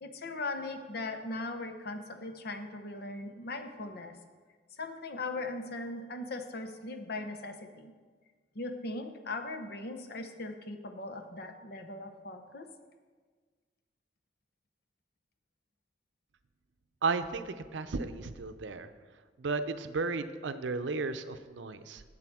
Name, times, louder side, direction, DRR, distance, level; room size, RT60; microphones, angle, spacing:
voice 1, 0.0-4.1 4.8-7.9 8.5-12.7, left 2 dB, 60° left, 7 dB, 0.9 m, -39 dB
voice 2, 17.0-18.9 19.4-22.0, right 4 dB, 80° right, 10 dB, 0.6 m, -34 dB
7.7 x 7.7 x 6.1 m, 1.5 s
head